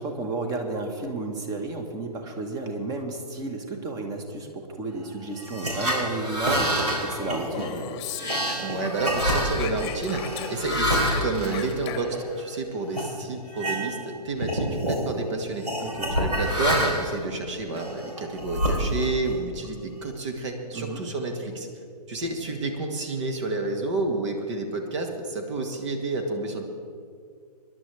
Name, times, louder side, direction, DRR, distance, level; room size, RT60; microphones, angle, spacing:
voice 1, 0.0-7.9 15.8-16.2 20.7-21.0, right 3 dB, 20° right, 5 dB, 1.4 m, -32 dB
sound 1, 5.4-12.4 12.9-13.1 13.5-14.1 14.4-15.0 15.6-17.2 17.7-19.3, equal, 80° right, 4.4 m, -27 dB
Speech, 7.2-8.9 9.2-12.3, left 8 dB, 25° left, 1.2 m, -37 dB
voice 2, 8.6-21.7 22.1-26.6, right 3 dB, 45° right, 4 dB, 1.8 m, -30 dB
25.5 x 11.0 x 3.4 m, 2.3 s
figure-of-eight pair, 130°, 21 cm